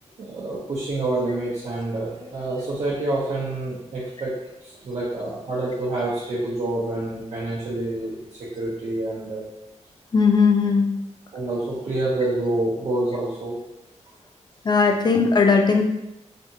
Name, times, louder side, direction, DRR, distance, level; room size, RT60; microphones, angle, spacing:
voice 1, 0.2-4.3 4.6-8.2 8.5-9.5 11.3-13.6, right 2 dB, 70° right, -8 dB, 0.7 m, -27 dB
voice 2, 10.1-10.9 14.6-15.8, left 4 dB, 35° left, 3 dB, 0.4 m, -18 dB
3.4 x 2.8 x 2.7 m, 0.89 s
wide cardioid pair, 180°, 12 cm